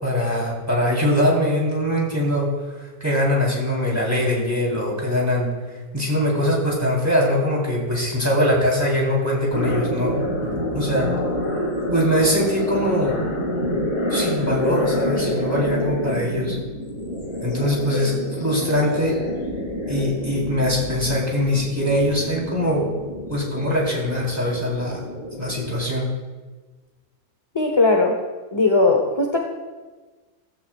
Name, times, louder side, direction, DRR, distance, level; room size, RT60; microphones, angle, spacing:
voice 1, 0.0-2.5 2.8-5.5 5.9-10.1 10.7-11.1 11.9-13.1 14.1-16.6 17.4-19.2 19.9-22.9 23.3-25.0 25.4-26.1, equal, 10° right, -4 dB, 3.6 m, -22 dB
sound 1, 9.5-25.8, left 1 dB, 60° left, 2.7 m, -28 dB
voice 2, 27.5-28.1 28.5-29.4, left 3 dB, 20° left, 2 dB, 0.9 m, -18 dB
15.5 x 15.0 x 2.4 m, 1.3 s
omnidirectional pair, 1.5 m